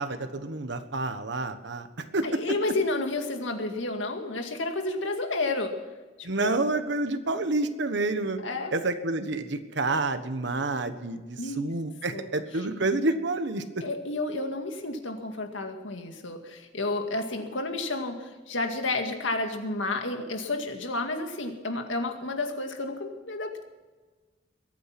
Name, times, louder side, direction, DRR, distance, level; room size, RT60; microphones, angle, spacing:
voice 1, 0.0-2.7 6.2-8.4 8.7-13.8, right 2 dB, 65° right, 9 dB, 1.3 m, -29 dB
voice 2, 2.2-5.8 6.2-6.6 8.4-8.7 11.4-11.7 12.1-12.3 12.6-12.7 13.8-23.6, left 2 dB, 80° left, 5 dB, 2.1 m, -31 dB
22.5 x 9.2 x 6.0 m, 1.3 s
head